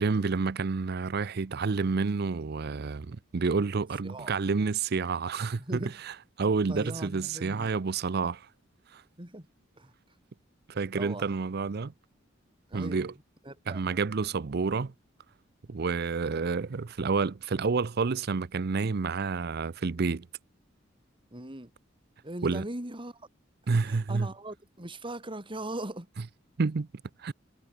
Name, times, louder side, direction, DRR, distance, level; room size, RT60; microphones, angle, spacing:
voice 1, 0.0-5.6 6.4-8.5 8.9-9.0 10.7-11.9 12.7-13.1 13.7-14.9 15.7-20.3 22.4-22.6 23.7-24.3 26.6-26.9 27.2-27.3, right 4 dB, 55° right, 0.6 m, -29 dB
voice 2, 4.0-4.3 5.6-5.9 6.7-7.7 9.2-9.5 9.8-9.9 10.9-11.3 12.7-13.1 13.4-13.8 21.3-21.7 22.2-23.3 23.6-26.1, right 1 dB, 25° right, 3.3 m, -40 dB
head